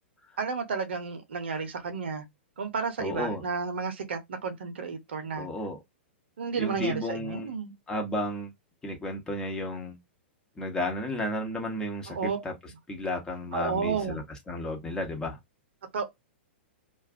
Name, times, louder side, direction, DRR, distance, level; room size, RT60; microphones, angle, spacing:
voice 1, 0.4-2.2 2.6-5.5 6.4-7.7 12.1-12.4 13.5-14.2 15.9-16.0, right 5 dB, 70° right, 0.8 m, -32 dB
voice 2, 3.0-3.4 5.3-5.8 6.6-7.5 7.9-8.5 8.8-10.0 10.6-12.2 12.4-12.5 12.9-15.4, left 1 dB, 10° left, 1.1 m, -33 dB
2.5 x 2.5 x 2.5 m
hypercardioid pair, 110°, 6 cm